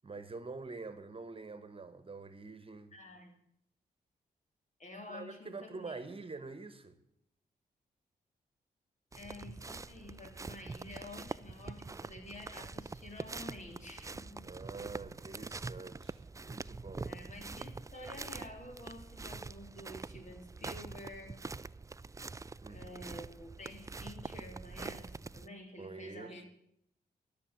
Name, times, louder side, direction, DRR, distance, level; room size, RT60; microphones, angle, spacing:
voice 1, 0.0-2.9 5.0-7.0 14.4-17.2 22.6-23.0 25.8-26.4, right 3 dB, 35° right, 11 dB, 1.3 m, -46 dB
voice 2, 2.9-3.3 4.8-6.0 9.1-14.5 17.0-21.4 22.7-26.5, left 1 dB, 50° left, 4 dB, 3.3 m, -50 dB
sound 1, 9.1-25.5, right 3 dB, 20° right, 0.4 m, -45 dB
13.0 x 7.0 x 9.5 m, 0.73 s
cardioid pair, 60°, 16 cm